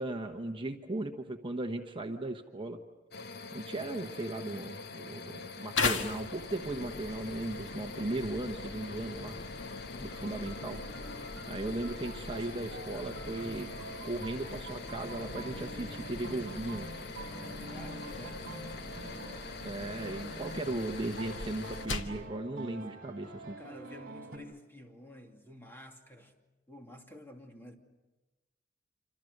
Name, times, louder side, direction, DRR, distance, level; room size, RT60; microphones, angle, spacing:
voice 1, 0.0-2.8 3.5-9.4 10.0-10.8 11.5-13.7 14.0-16.9 19.6-23.6, right 2 dB, 25° right, 1.1 m, -37 dB
sound 1, 3.1-21.8, left 4 dB, 60° left, 1.2 m, -45 dB
sound 2, 5.8-22.2, left 3 dB, 75° left, 1.7 m, -41 dB
sound 3, 10.1-24.4, right 2 dB, 50° right, 4.9 m, -47 dB
voice 2, 17.7-18.7 19.0-19.4 23.6-26.3 26.7-27.8, left 1 dB, 10° left, 2.5 m, -51 dB
27.5 x 26.5 x 6.7 m
head